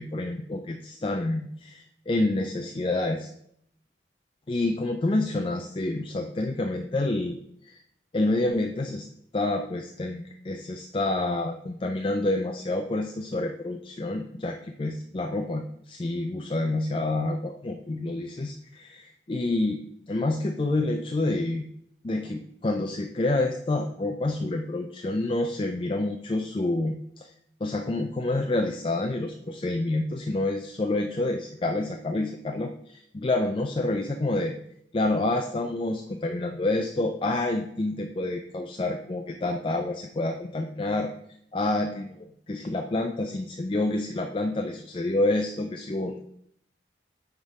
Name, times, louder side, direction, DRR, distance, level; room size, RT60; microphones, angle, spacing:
voice 1, 0.0-3.3 4.5-7.4 7.6-7.8 8.1-9.1 9.3-21.7 22.0-27.3 27.6-34.5 34.9-41.1 41.5-46.2, left 2 dB, 30° left, 4 dB, 0.4 m, -28 dB
9.4 x 3.7 x 4.8 m, 0.69 s
head